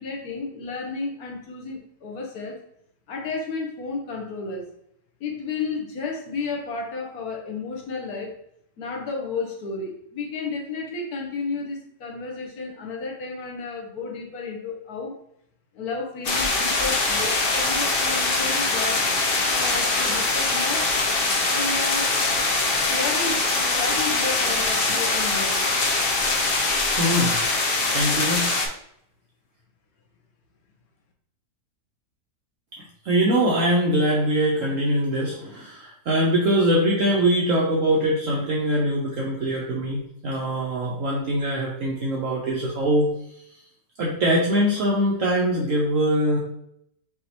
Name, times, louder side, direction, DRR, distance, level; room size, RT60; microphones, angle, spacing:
voice 1, 0.0-2.6 3.1-4.7 5.2-8.3 8.8-15.2 15.7-19.0 19.5-20.9 21.5-22.2 22.9-25.6, left 4 dB, 70° left, 0 dB, 1.5 m, -32 dB
sound 1, 16.2-28.7, left 3 dB, 50° left, 0.8 m, -23 dB
voice 2, 27.0-27.4 27.9-28.5 33.0-43.1 44.0-46.4, right 1 dB, 60° right, -4 dB, 1.1 m, -22 dB
6.2 x 3.0 x 2.9 m, 0.74 s
omnidirectional pair, 1.7 m